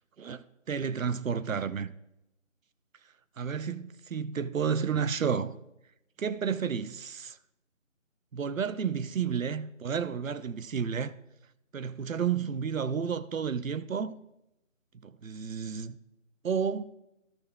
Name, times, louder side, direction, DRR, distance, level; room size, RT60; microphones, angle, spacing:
voice 1, 0.2-1.9 3.4-5.5 6.2-7.4 8.3-11.1 11.7-14.1 15.0-16.0 16.4-16.8, right 6 dB, 75° right, 0.7 m, -31 dB
13.5 x 8.1 x 2.2 m
figure-of-eight pair, 175°, 40 cm